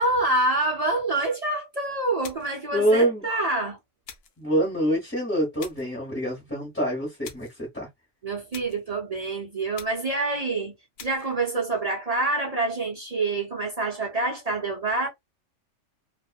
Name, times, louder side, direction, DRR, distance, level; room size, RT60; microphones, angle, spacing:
voice 1, 0.0-3.8 8.2-10.7 11.0-15.1, right 2 dB, 50° right, 0.4 m, -26 dB
sound 1, 2.2-2.7 4.0-4.4 5.6-6.0 7.2-7.6 8.5-8.9 9.7-10.2 11.0-11.3, left 7 dB, 65° left, 0.6 m, -45 dB
voice 2, 2.7-3.2 4.4-7.9, right 1 dB, 10° left, 0.9 m, -25 dB
2.3 x 2.3 x 2.3 m
omnidirectional pair, 1.4 m